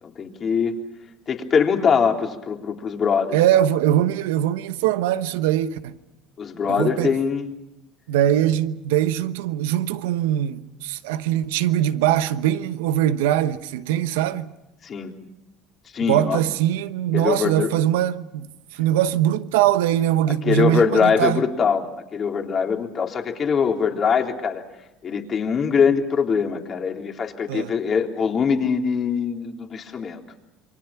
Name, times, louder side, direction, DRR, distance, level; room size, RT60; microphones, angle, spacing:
voice 1, 0.0-0.7 1.3-3.4 6.4-7.5 14.8-15.1 15.9-16.4 17.1-17.7 20.4-24.6 25.0-30.2, left 6 dB, 40° left, 3.5 m, -22 dB
voice 2, 3.3-5.9 6.7-7.2 8.1-14.5 16.0-21.4 27.5-27.7, right 12 dB, 85° right, 1.1 m, -22 dB
28.5 x 24.0 x 5.9 m
supercardioid pair, 80°, 0 cm